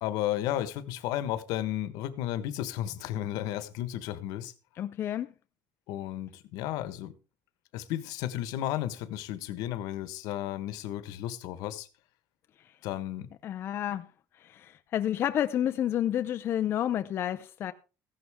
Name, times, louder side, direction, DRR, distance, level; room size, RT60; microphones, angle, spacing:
voice 1, 0.0-4.5 5.9-7.1 7.7-11.9 12.8-13.3, left 12 dB, 75° left, 1.3 m, -33 dB
voice 2, 4.8-5.3 13.4-14.1 14.4-17.7, left 11 dB, 40° left, 0.6 m, -30 dB
15.5 x 11.5 x 3.6 m
cardioid pair, 170°, 6 cm